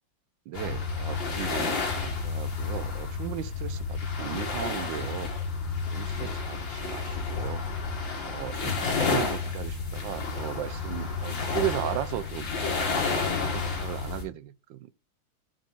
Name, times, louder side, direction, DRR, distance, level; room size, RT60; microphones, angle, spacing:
sound 1, 0.5-14.2, left 4 dB, 75° left, 2.5 m, -31 dB
voice 1, 0.5-5.3 5.9-7.6 8.2-12.5 13.1-14.9, right 13 dB, 75° right, 1.3 m, -36 dB
5.9 x 5.0 x 3.8 m
omnidirectional pair, 2.1 m